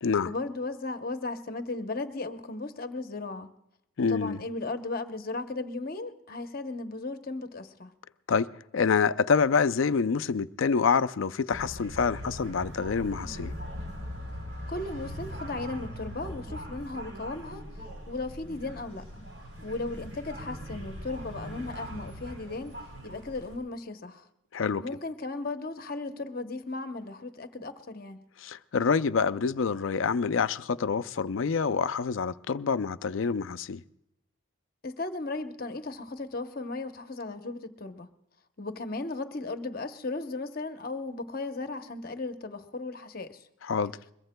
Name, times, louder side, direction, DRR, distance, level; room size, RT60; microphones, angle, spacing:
voice 1, 0.3-3.5 4.0-7.9 14.7-17.6 18.1-19.3 19.6-22.8 23.0-24.3 24.8-28.2 34.8-38.1 38.6-43.4, left 3 dB, 45° left, 0.8 m, -36 dB
voice 2, 4.0-4.4 8.3-13.5 24.5-24.8 28.4-33.8 43.6-43.9, left 5 dB, 70° left, 0.4 m, -27 dB
sound 1, 11.5-23.6, equal, 65° right, 4.0 m, -40 dB
22.5 x 22.0 x 2.2 m
head